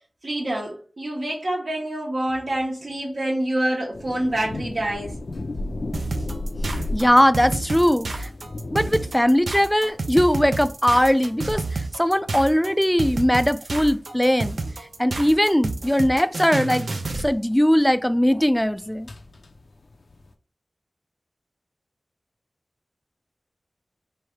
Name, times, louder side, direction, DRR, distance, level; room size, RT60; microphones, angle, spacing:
voice 1, 0.2-5.2, right 1 dB, 70° right, 1.2 m, -26 dB
sound 1, 3.9-20.3, left 2 dB, 75° left, 0.5 m, -36 dB
righteous rhombus loop, 5.9-17.3, right 3 dB, 90° right, 0.5 m, -29 dB
voice 2, 6.9-8.3 8.7-14.6 15.0-16.9 17.2-19.1, equal, 5° left, 0.3 m, -20 dB
3.3 x 2.7 x 4.4 m
wide cardioid pair, 65°, 0 cm